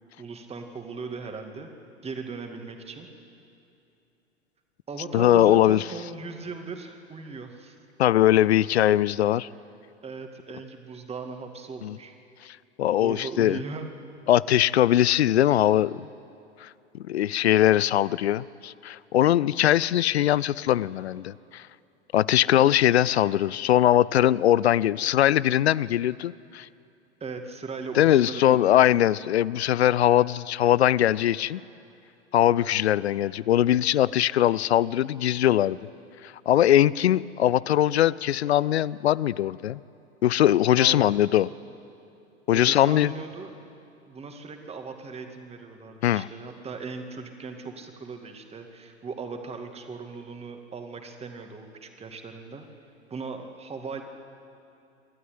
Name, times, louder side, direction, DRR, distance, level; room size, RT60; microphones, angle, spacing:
voice 1, 0.2-1.7 2.0-3.1 4.9-7.8 8.4-8.5 10.0-12.1 13.0-13.9 27.2-28.8 40.7-41.1 42.5-43.5 44.1-52.6 53.1-54.0, right 4 dB, 15° right, 5 dB, 2.3 m, -38 dB
voice 2, 5.1-5.8 8.0-9.5 11.8-12.0 12.8-13.6 14.3-16.1 16.6-16.7 17.1-21.6 22.1-26.7 28.0-31.6 32.3-35.8 36.2-39.8 40.2-41.5 42.5-43.1 46.0-46.3, left 12 dB, 65° left, 21 dB, 0.5 m, -21 dB
28.0 x 12.5 x 9.4 m, 2.7 s
figure-of-eight pair, 90°, 34 cm